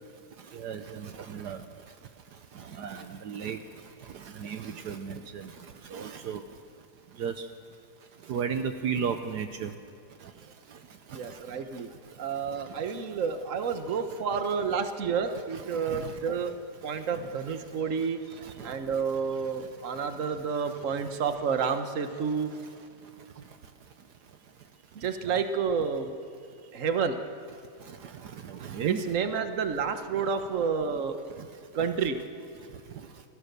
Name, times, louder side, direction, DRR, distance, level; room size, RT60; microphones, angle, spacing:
voice 1, 0.5-1.6 2.6-3.6 4.1-5.5 5.9-6.4 7.2-7.5 8.3-9.7 11.3-11.4 14.3-14.4 15.5-16.1 17.1-17.3 18.4-18.8 25.2-25.4 28.0-29.0, right 7 dB, 70° right, 8 dB, 1.5 m, -35 dB
voice 2, 11.1-11.9 12.2-16.5 16.8-18.2 18.6-22.5 24.9-26.1 26.7-27.2 28.8-31.2 31.7-32.2, right 6 dB, 50° right, 8 dB, 1.5 m, -30 dB
28.5 x 16.5 x 6.9 m, 2.4 s
omnidirectional pair, 1.8 m